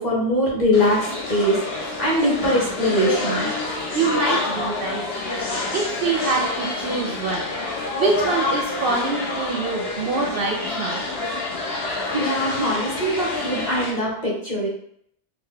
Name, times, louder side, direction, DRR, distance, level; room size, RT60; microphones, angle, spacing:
voice 1, 0.0-3.5 11.8-14.7, equal, 35° left, -5 dB, 1.3 m, -22 dB
sound 1, 0.7-13.9, left 3 dB, 60° left, 1.0 m, -27 dB
voice 2, 3.9-5.0 5.7-7.5 7.9-11.0, right 4 dB, 60° right, 1 dB, 0.6 m, -25 dB
3.9 x 2.1 x 3.7 m, 0.68 s
omnidirectional pair, 1.2 m